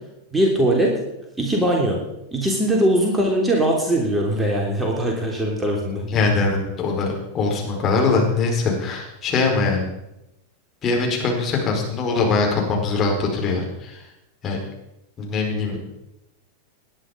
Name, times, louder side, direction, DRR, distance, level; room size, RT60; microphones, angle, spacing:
voice 1, 0.3-0.9 1.4-2.0 2.3-6.1, right 1 dB, 10° right, 0 dB, 3.2 m, -21 dB
voice 2, 6.1-9.9 10.8-14.1 14.4-14.6 15.2-15.8, left 4 dB, 25° left, 0 dB, 4.8 m, -22 dB
20.0 x 10.0 x 5.2 m, 0.89 s
figure-of-eight pair, 90°, 0 cm